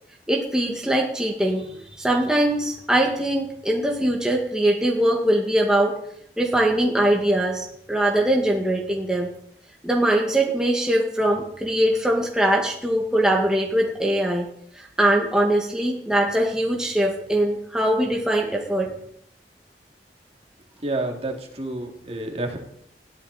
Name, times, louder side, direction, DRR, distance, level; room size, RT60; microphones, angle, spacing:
voice 1, 0.3-6.0 6.4-9.3 9.8-14.5 14.7-18.9, right 1 dB, 5° right, -1 dB, 1.8 m, -22 dB
voice 2, 20.8-22.6, right 2 dB, 35° right, 2 dB, 2.7 m, -29 dB
20.0 x 14.0 x 4.2 m, 0.72 s
head